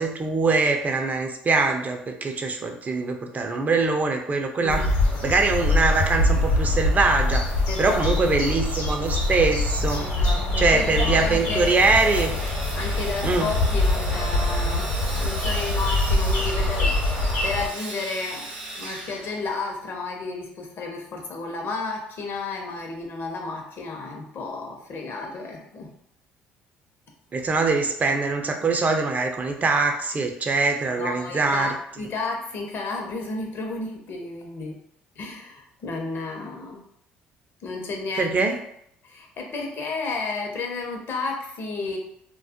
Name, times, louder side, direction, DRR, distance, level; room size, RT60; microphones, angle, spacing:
voice 1, 0.0-4.8 5.2-7.4 7.8-10.1 10.6-12.3 13.2-13.5 27.3-31.7 38.2-38.6, right 3 dB, 35° right, 4 dB, 0.4 m, -23 dB
voice 2, 4.6-4.9 7.7-8.1 10.0-11.7 12.7-18.5 18.8-25.9 31.0-34.8 35.2-36.8 37.6-38.6 39.0-42.0, left 3 dB, 55° left, 2 dB, 0.6 m, -32 dB
sound 1, 4.7-17.7, left 1 dB, 85° left, 0.8 m, -24 dB
Sawing, 10.5-19.9, right 2 dB, 85° right, 0.7 m, -38 dB
2.2 x 2.0 x 2.7 m, 0.71 s
hypercardioid pair, 60°, 5 cm